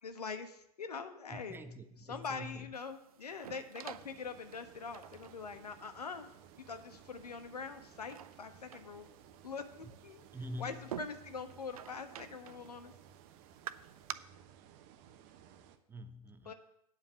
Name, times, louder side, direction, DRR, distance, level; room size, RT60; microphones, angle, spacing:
voice 1, 0.0-1.6 2.1-6.3 6.7-9.1 9.4-10.2 10.6-12.9 16.4-16.5, left 5 dB, 75° left, 8 dB, 1.2 m, -43 dB
voice 2, 1.3-2.7 3.4-3.6 9.8-9.9 10.3-11.0 15.9-16.5, equal, 10° right, 10 dB, 0.5 m, -46 dB
sound 1, 2.7-14.1, right 10 dB, 65° right, 0.5 m, -51 dB
sound 2, 3.9-15.8, right 9 dB, 40° right, 0.9 m, -59 dB
8.8 x 5.2 x 7.8 m, 0.77 s
figure-of-eight pair, 100°, 20 cm